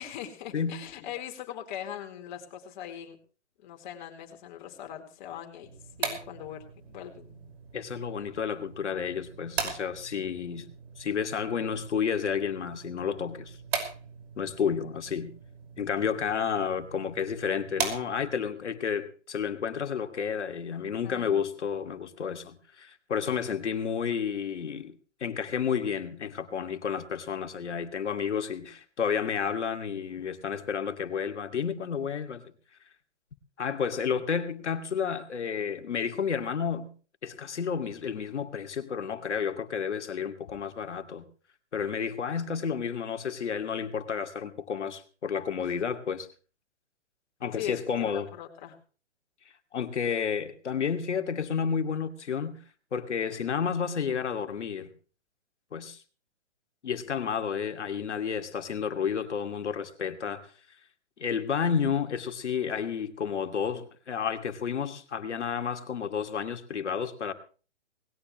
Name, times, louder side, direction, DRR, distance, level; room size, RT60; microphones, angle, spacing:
voice 1, 0.0-3.2 3.6-5.7 6.0-7.4 21.0-21.4 45.6-45.8 47.5-48.8, left 10 dB, 40° left, 4.3 m, -41 dB
sound 1, 5.6-18.5, right 5 dB, 60° right, 5.6 m, -40 dB
voice 2, 7.7-10.7 11.0-13.6 14.4-15.3 15.8-24.9 25.2-32.4 33.6-36.9 37.2-41.3 41.7-46.3 47.4-48.3 49.7-52.6 52.9-54.9 55.7-56.0 56.8-60.5 61.2-67.3, left 7 dB, 75° left, 2.6 m, -31 dB
20.0 x 17.5 x 3.2 m
hypercardioid pair, 145°, 35 cm